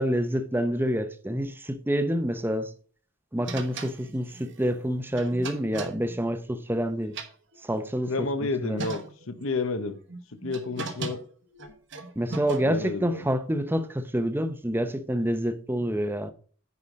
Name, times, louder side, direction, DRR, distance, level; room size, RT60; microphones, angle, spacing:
voice 1, 0.0-2.7 3.3-7.2 7.6-8.8 12.2-16.3, equal, 10° right, 0.7 m, -27 dB
sound 1, 3.5-6.8 7.0-8.1 8.5-8.6 8.8-9.4 10.1-12.9, right 3 dB, 55° right, 1.2 m, -38 dB
voice 2, 8.1-9.0 9.3-10.0 10.4-11.2 12.7-13.2, left 3 dB, 75° left, 0.9 m, -30 dB
9.7 x 4.9 x 5.1 m
head